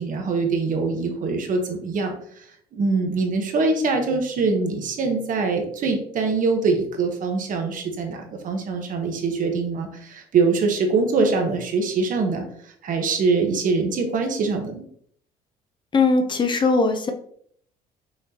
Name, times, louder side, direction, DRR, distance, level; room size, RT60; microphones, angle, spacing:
voice 1, 0.0-2.1 2.7-12.4 12.8-14.8, right 4 dB, 50° right, 4 dB, 1.0 m, -23 dB
voice 2, 15.9-17.1, left 3 dB, 30° left, 6 dB, 0.6 m, -20 dB
5.7 x 3.1 x 2.8 m, 0.63 s
cardioid pair, 110°, 17 cm